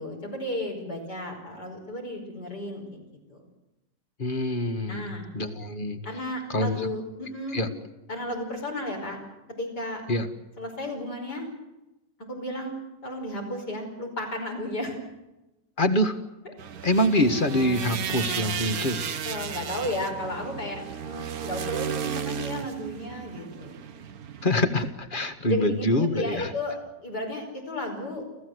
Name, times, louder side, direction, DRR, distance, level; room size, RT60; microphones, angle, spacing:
voice 1, 0.0-3.5 4.8-5.3 6.0-7.6 8.1-9.2 9.6-10.0 10.6-11.5 12.3-12.8 13.0-15.0 19.2-23.8 25.5-28.2, left 1 dB, 70° left, 0 dB, 5.9 m, -33 dB
voice 2, 4.2-6.0 6.5-6.8 7.5-7.7 10.1-10.3 15.8-16.2 16.8-19.0 24.4-26.5, left 1 dB, 30° left, 9 dB, 1.8 m, -25 dB
sound 1, 16.6-24.6, right 7 dB, 60° right, 1.5 m, -34 dB
29.5 x 15.5 x 8.0 m, 0.98 s
omnidirectional pair, 1.9 m